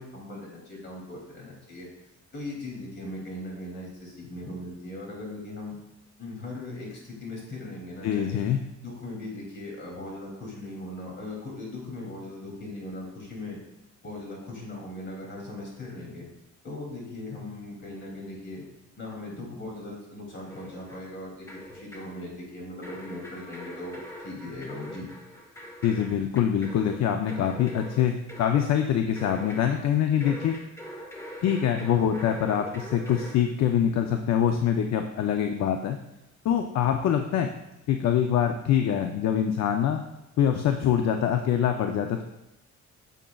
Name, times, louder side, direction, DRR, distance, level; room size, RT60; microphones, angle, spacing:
voice 1, 0.0-1.9 2.3-5.8 6.2-8.4 8.8-13.6 14.0-16.3 16.6-18.7 19.0-25.1, left 2 dB, 40° left, -3 dB, 2.7 m, -39 dB
voice 2, 8.0-8.6 25.8-30.6 31.4-36.0 36.4-37.5 37.9-40.0 40.4-42.2, left 9 dB, 65° left, 5 dB, 0.5 m, -24 dB
sound 1, 20.5-21.2 21.5-22.2 22.8-29.9 30.2-33.5, equal, 10° left, 1.0 m, -43 dB
9.0 x 7.3 x 2.3 m, 0.91 s
cardioid pair, 155°, 29 cm